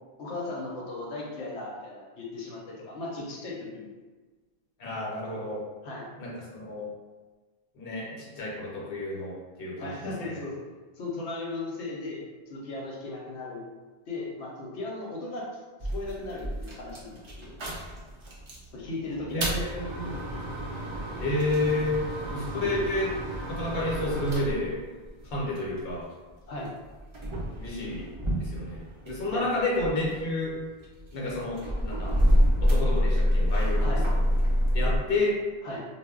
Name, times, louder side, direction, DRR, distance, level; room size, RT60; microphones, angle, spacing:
voice 1, 0.2-3.9 5.8-6.1 9.8-10.5 11.0-13.6 14.1-15.5 15.9-17.5 18.7-19.6 22.5-22.8 26.5-26.8 29.3-29.5 33.8-34.1 35.6-35.8, left 2 dB, 80° left, -3 dB, 0.9 m, -36 dB
voice 2, 4.8-5.6 6.2-6.9 7.7-9.9 10.3-10.4 19.3-20.2 21.2-22.0 22.3-23.1 23.5-24.8 25.3-26.0 27.6-28.0 28.4-30.5 31.1-32.1 32.6-34.2 34.7-35.3, left 2 dB, 60° left, -5 dB, 0.9 m, -30 dB
sound 1, 15.8-18.7 19.1-25.9 26.7-29.3 29.6-35.0, equal, 50° right, 0.3 m, -28 dB
2.1 x 2.0 x 3.5 m, 1.3 s
omnidirectional pair, 1.2 m